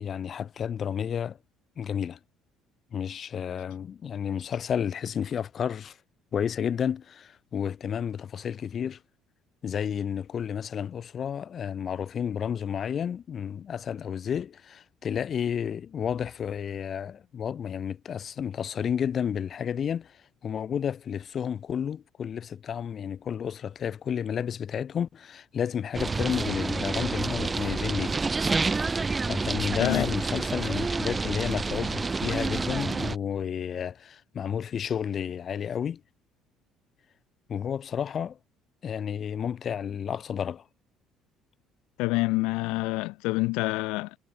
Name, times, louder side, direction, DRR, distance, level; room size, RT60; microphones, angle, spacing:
voice 1, 0.0-1.4 1.8-2.2 2.9-6.0 6.3-9.0 9.6-28.2 29.2-36.0 37.5-38.4 38.8-40.6, left 8 dB, 50° left, 5.6 m, -31 dB
sound 1, 25.9-33.2, right 4 dB, 25° right, 1.1 m, -28 dB
voice 2, 29.8-30.1 42.0-44.2, left 24 dB, 80° left, 4.8 m, -27 dB
supercardioid pair, 70°, 0 cm